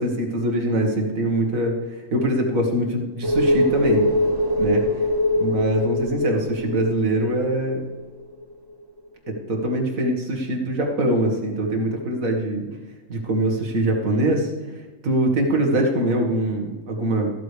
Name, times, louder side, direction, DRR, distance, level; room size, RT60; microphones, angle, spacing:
voice 1, 0.0-1.8 2.1-4.1 4.6-4.9 5.4-7.8 9.3-12.7 13.1-14.5 15.0-17.3, right 1 dB, 90° right, 2 dB, 2.2 m, -23 dB
sound 1, 3.2-8.4 8.7-8.8, left 1 dB, 65° right, 2.2 m, -23 dB
14.5 x 12.5 x 3.4 m, 1.3 s
omnidirectional pair, 1.4 m